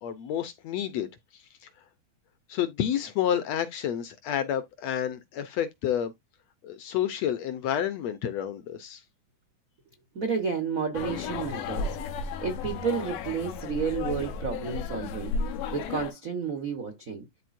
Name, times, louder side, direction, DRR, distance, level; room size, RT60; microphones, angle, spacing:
voice 1, 0.0-1.4 2.5-6.1 6.6-9.0, left 10 dB, 70° left, 1.7 m, -30 dB
voice 2, 10.1-17.3, right 5 dB, 75° right, 0.7 m, -31 dB
sound 1, 10.9-16.1, left 4 dB, 90° left, 2.7 m, -33 dB
12.0 x 4.1 x 2.6 m
omnidirectional pair, 3.7 m